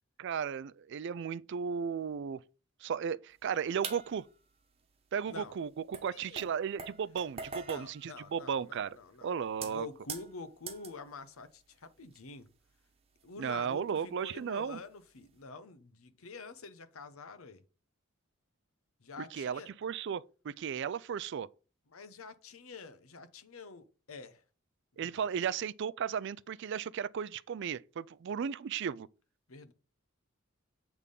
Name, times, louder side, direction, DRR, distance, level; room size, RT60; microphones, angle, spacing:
voice 1, 0.2-2.4 2.8-4.2 5.1-8.9 9.2-9.9 13.4-14.8 19.3-21.5 25.0-29.1, right 7 dB, 55° right, 0.3 m, -35 dB
sound 1, 3.8-4.4 5.3-5.4 5.9-9.0 9.5-11.0 11.5-11.7 12.1-12.2 13.2-13.9 14.3-14.5 15.2-15.4, right 5 dB, 30° right, 1.1 m, -44 dB
voice 2, 6.1-6.5 7.6-12.5 13.2-17.6 19.0-19.7 21.9-24.4 24.9-25.3 29.5-29.7, left 4 dB, 85° left, 0.9 m, -48 dB
8.3 x 3.5 x 5.3 m
head